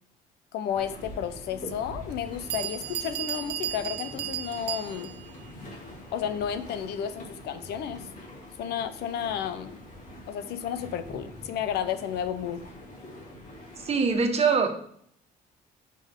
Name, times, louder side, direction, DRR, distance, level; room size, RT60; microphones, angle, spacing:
voice 1, 0.5-5.1 6.1-8.1 8.6-9.8 10.3-12.7, left 9 dB, 75° left, 12 dB, 0.8 m, -32 dB
sound 1, 0.7-14.1, left 1 dB, 45° left, 2.6 m, -44 dB
Bell, 1.3-1.4 2.1-2.2 2.5-5.3, right 12 dB, 75° right, 0.7 m, -34 dB
voice 2, 13.8-14.7, right 5 dB, 40° right, 5 dB, 1.5 m, -23 dB
11.0 x 5.3 x 3.7 m, 0.64 s
cardioid pair, 110°, 17 cm